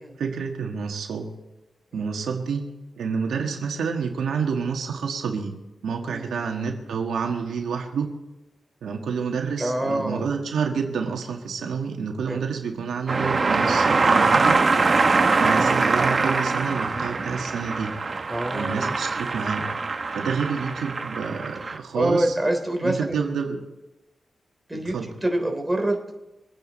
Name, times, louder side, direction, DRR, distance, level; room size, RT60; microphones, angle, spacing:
voice 1, 0.2-1.3 1.9-2.7 3.0-5.6 5.8-8.1 8.8-14.6 15.4-18.0 18.5-19.7 20.1-22.3 22.8-23.6 24.7-25.1, right 6 dB, 90° right, 2 dB, 1.6 m, -28 dB
voice 2, 9.6-10.3 12.3-12.4 18.3-18.9 21.9-23.2 24.7-25.0 25.2-26.0, right 1 dB, 10° right, 3 dB, 3.4 m, -26 dB
sound 1, 13.1-21.8, right 4 dB, 45° right, 1.1 m, -23 dB
24.0 x 9.4 x 4.1 m, 0.98 s
cardioid pair, 70°, 0 cm